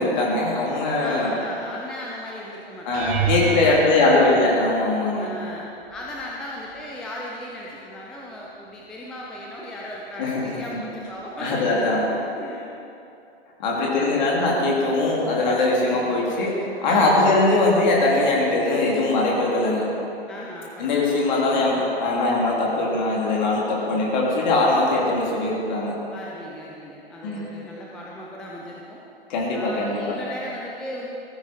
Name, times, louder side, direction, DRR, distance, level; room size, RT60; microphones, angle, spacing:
voice 1, 0.0-1.3 2.8-5.3 10.2-10.8 11.4-12.0 13.6-19.9 20.8-26.0 27.2-27.5 29.3-30.1, left 2 dB, 45° left, -4 dB, 3.2 m, -21 dB
voice 2, 1.0-4.3 5.2-12.8 13.7-14.3 15.9-16.2 16.9-17.5 20.3-21.7 26.1-29.0 29.5-31.1, left 1 dB, ahead, -4 dB, 0.4 m, -37 dB
sound 1, 2.9-5.2 5.9-6.4 6.7-6.9 11.2-11.3, right 7 dB, 20° right, 1.1 m, -29 dB
14.5 x 9.7 x 4.4 m, 2.7 s
figure-of-eight pair, 110°, 32 cm